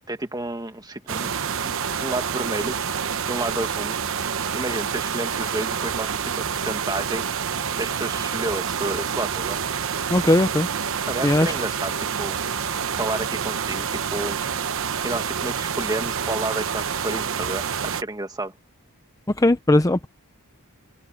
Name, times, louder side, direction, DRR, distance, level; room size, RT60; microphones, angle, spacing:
voice 1, 0.1-1.3 1.6-1.7 2.0-2.8 3.3-4.0 4.5-7.2 7.8-9.6 11.1-12.4 12.9-14.4 15.0-18.5, right 2 dB, 20° right, 1.8 m, -30 dB
sound 1, 1.1-18.0, right 7 dB, 60° right, 1.0 m, -27 dB
voice 2, 10.1-10.7 11.2-11.5 19.3-20.1, left 1 dB, 15° left, 0.6 m, -18 dB
head